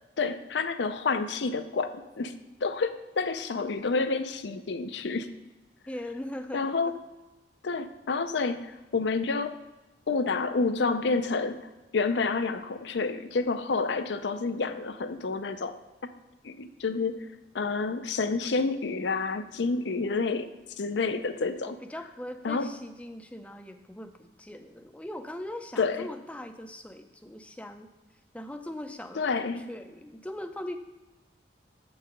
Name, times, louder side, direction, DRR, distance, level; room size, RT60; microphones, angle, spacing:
voice 1, 0.2-5.3 6.5-6.9 7.6-9.6 10.1-15.8 16.4-17.3 17.5-20.5 20.8-21.8 22.4-22.7 25.8-26.1 29.2-29.6, left 4 dB, 75° left, 10 dB, 0.5 m, -29 dB
voice 2, 5.9-6.7 21.6-27.9 28.3-30.8, left 1 dB, 5° left, 7 dB, 0.4 m, -40 dB
7.6 x 4.7 x 5.1 m, 1.1 s
head